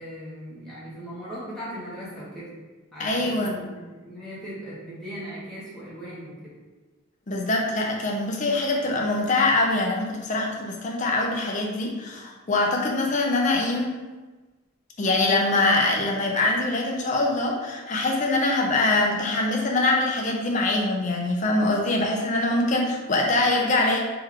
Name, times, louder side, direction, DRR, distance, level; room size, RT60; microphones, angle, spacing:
voice 1, 0.0-2.5 2.9-6.5, equal, ahead, -10 dB, 1.3 m, -38 dB
voice 2, 3.0-3.6 7.3-13.9 15.0-24.0, left 2 dB, 35° left, 0 dB, 0.6 m, -23 dB
3.4 x 3.3 x 3.6 m, 1.2 s
head